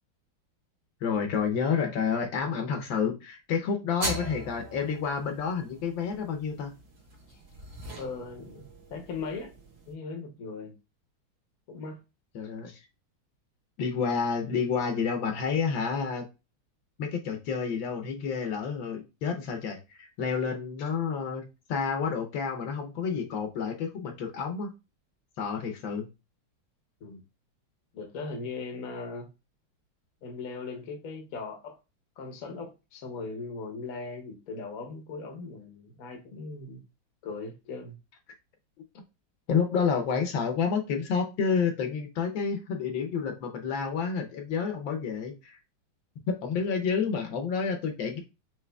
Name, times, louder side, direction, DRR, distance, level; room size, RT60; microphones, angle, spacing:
voice 1, 1.0-6.7 12.3-12.8 13.8-16.2 17.0-24.7 25.4-26.1 39.5-45.6 46.3-48.2, left 6 dB, 70° left, 1.4 m, -29 dB
sound 1, 4.0-9.9, right 2 dB, 70° right, 1.9 m, -41 dB
voice 2, 8.0-9.5 9.9-10.7 11.7-12.0 27.0-27.2 27.9-29.3 30.2-31.8 32.2-36.8 37.2-38.0, left 4 dB, 55° left, 1.0 m, -39 dB
5.7 x 3.0 x 2.2 m
omnidirectional pair, 2.2 m